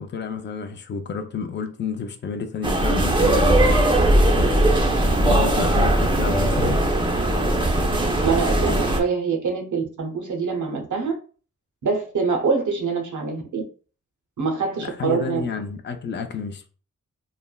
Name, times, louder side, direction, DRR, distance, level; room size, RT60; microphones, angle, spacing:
voice 1, 0.0-3.8 4.3-4.8 5.2-6.8 14.8-16.7, left 5 dB, 35° left, 0.4 m, -30 dB
sound 1, 2.6-9.0, right 1 dB, 15° right, 0.5 m, -19 dB
voice 2, 8.2-11.2 11.8-13.6 14.4-15.4, right 5 dB, 70° right, 0.7 m, -24 dB
3.2 x 2.1 x 2.2 m
cardioid pair, 75°, 31 cm